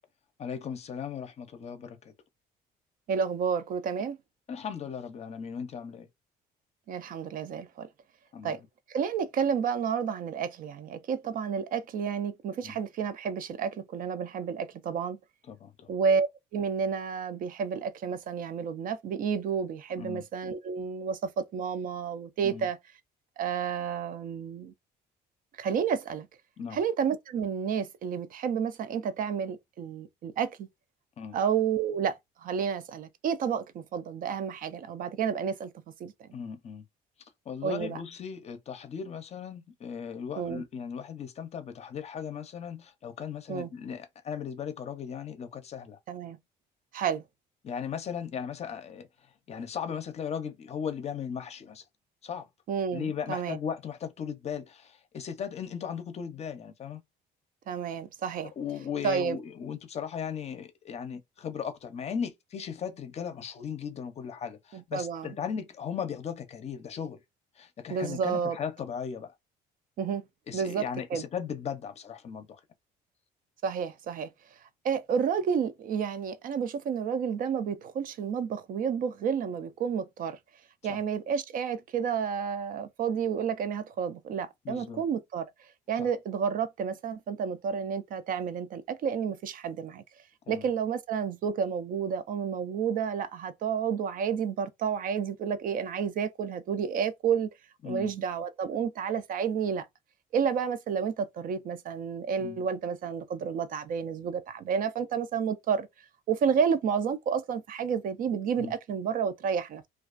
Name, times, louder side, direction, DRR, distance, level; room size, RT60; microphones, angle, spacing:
voice 1, 0.4-2.1 4.5-6.1 8.3-8.6 12.6-12.8 15.5-15.9 20.0-20.2 22.4-22.7 26.6-26.8 31.2-31.4 36.3-36.8 37.5-46.0 47.6-49.1 49.5-51.8 52.2-52.5 52.9-57.0 58.6-67.2 67.6-69.3 70.5-72.6 80.9-81.0 84.6-85.0 86.0-86.1 90.5-90.7 97.8-98.1 102.4-102.6 108.6-108.7, left 7 dB, 40° left, 0.5 m, -37 dB
voice 2, 3.1-4.2 6.9-7.9 8.4-8.6 8.9-15.2 15.9-16.3 16.5-22.8 23.4-24.7 25.6-26.3 26.7-30.7 31.3-35.7 36.0-36.3 37.6-38.0 40.4-40.7 43.5-43.7 46.1-46.4 46.9-47.2 52.7-53.6 57.7-58.5 59.0-59.4 64.7-65.4 67.9-68.6 70.0-70.2 70.5-70.8 71.1-71.2 73.6-74.3 74.8-80.4 80.8-85.5 85.9-90.0 90.5-97.5 97.8-99.9 100.3-105.9 106.3-109.8, right 7 dB, 55° right, 0.4 m, -30 dB
2.3 x 2.3 x 2.4 m
cardioid pair, 110°, 17 cm